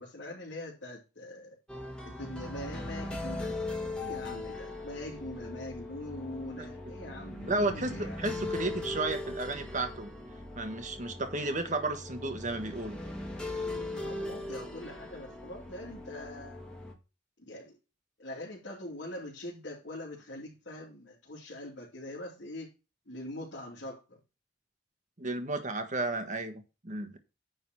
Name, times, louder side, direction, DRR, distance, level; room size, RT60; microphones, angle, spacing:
voice 1, 0.0-1.5 2.0-3.6 3.9-8.3 13.9-16.6 17.4-17.8 18.2-22.7 23.1-24.2, left 1 dB, 75° left, -5 dB, 3.0 m, -43 dB
sound 1, 1.7-16.9, left 2 dB, 5° left, 1.8 m, -39 dB
voice 2, 7.5-10.1 10.6-13.0 25.2-27.2, right 2 dB, 40° right, 7 dB, 1.5 m, -33 dB
9.8 x 4.1 x 6.2 m, 0.30 s
head